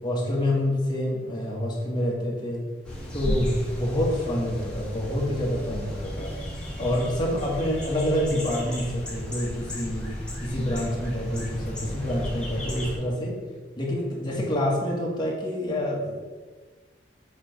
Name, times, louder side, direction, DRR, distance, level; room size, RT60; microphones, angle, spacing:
voice 1, 0.0-2.7 3.1-6.3 6.8-10.1 10.4-13.4 13.7-16.2, left 1 dB, 25° left, -3 dB, 1.5 m, -27 dB
sound 1, 2.8-13.0, equal, 5° left, 1.4 m, -33 dB
7.1 x 3.4 x 5.1 m, 1.3 s
head